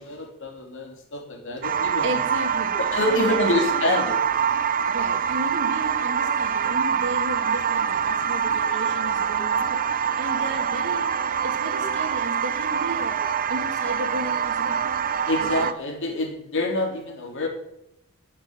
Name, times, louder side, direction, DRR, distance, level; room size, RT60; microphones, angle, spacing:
voice 1, 0.0-2.3 2.8-4.2 15.3-17.5, left 1 dB, 60° left, 1 dB, 3.6 m, -26 dB
sound 1, 1.6-15.7, right 7 dB, 40° right, 0.7 m, -25 dB
voice 2, 1.7-2.8 3.1-3.9 4.9-13.2 13.5-14.8 15.4-15.7, right 1 dB, 60° right, 4 dB, 2.6 m, -34 dB
11.5 x 7.0 x 9.8 m, 0.82 s
head